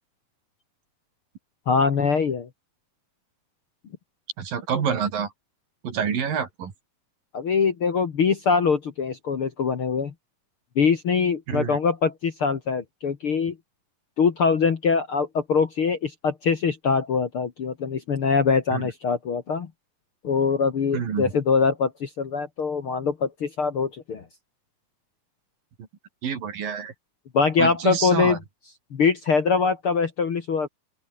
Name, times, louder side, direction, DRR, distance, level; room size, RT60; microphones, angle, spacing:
voice 1, 1.7-2.5 7.3-10.1 10.8-13.6 14.2-19.7 20.2-24.2 27.3-28.4 28.9-30.7, left 5 dB, 45° left, 2.0 m, -23 dB
voice 2, 4.4-5.3 5.8-6.7 11.5-11.8 18.7-18.8 20.9-21.3 26.2-26.9 27.6-28.4, right 7 dB, 70° right, 4.9 m, -27 dB
open air
omnidirectional pair, 4.2 m